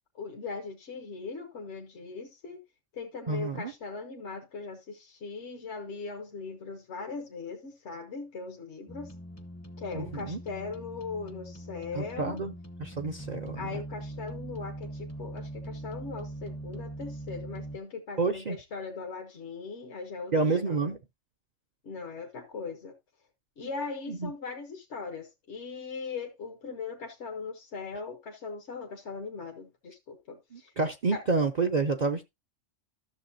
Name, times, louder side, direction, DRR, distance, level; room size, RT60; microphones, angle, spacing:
voice 1, 0.1-2.6 2.9-9.1 9.8-12.4 13.5-21.0 21.8-22.9 23.6-30.7 31.1-31.2, left 4 dB, 65° left, 1.4 m, -39 dB
voice 2, 3.3-3.7 9.9-10.4 11.9-12.5 12.8-13.8 18.2-18.6 20.3-21.0 24.1-24.3 30.5-32.2, right 4 dB, 45° right, 0.6 m, -29 dB
sound 1, 8.9-17.8, right 1 dB, 15° left, 0.7 m, -42 dB
12.5 x 6.8 x 2.7 m
omnidirectional pair, 1.3 m